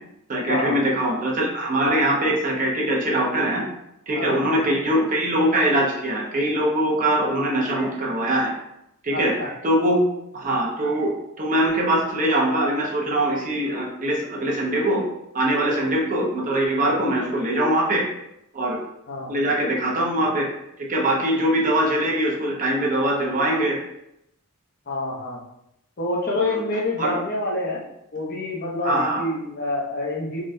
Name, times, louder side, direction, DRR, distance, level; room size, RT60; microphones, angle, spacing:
voice 1, 0.3-3.6 4.1-8.5 9.0-10.0 10.3-15.0 15.3-18.1 18.5-18.8 19.3-20.5 20.8-23.8 26.4-26.6 27.0-27.2 28.8-29.2, right 1 dB, 40° right, -2 dB, 0.6 m, -22 dB
voice 2, 4.1-4.6 9.1-9.5 16.8-17.0 19.1-19.4 24.9-25.4 26.0-27.8 28.1-30.4, left 2 dB, 45° left, -4 dB, 0.7 m, -27 dB
3.6 x 2.2 x 2.6 m, 0.81 s
head